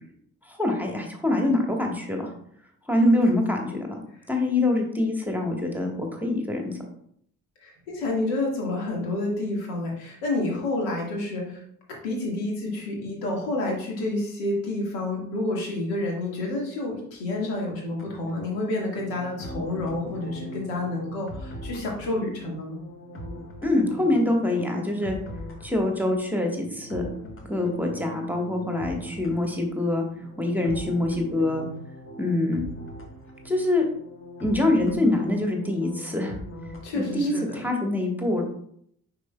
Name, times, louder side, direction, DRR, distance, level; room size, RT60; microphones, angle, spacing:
voice 1, 0.4-2.3 2.9-4.0 4.3-6.8 23.6-25.2 25.6-27.1 27.5-30.0 30.4-31.6 32.2-32.6 33.4-33.8 34.4-36.4 36.9-38.4, left 2 dB, 5° right, 1 dB, 1.4 m, -24 dB
voice 2, 7.6-11.6 11.9-22.8 36.8-37.6, left 2 dB, 65° left, -1 dB, 1.9 m, -29 dB
sound 1, 17.9-37.5, right 1 dB, 30° left, 1.4 m, -41 dB
10.0 x 4.1 x 2.3 m, 0.67 s
figure-of-eight pair, 45°, 39 cm